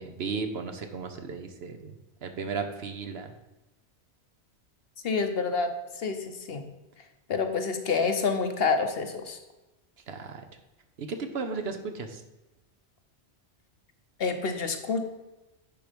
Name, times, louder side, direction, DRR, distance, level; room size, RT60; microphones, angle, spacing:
voice 1, 0.0-1.9 2.2-3.3 10.1-10.4 11.0-12.2, right 5 dB, 65° right, 6 dB, 1.1 m, -35 dB
voice 2, 5.0-6.6 7.3-9.4 14.2-15.0, left 4 dB, 60° left, 7 dB, 1.1 m, -28 dB
10.5 x 4.7 x 5.2 m, 1.0 s
omnidirectional pair, 1.1 m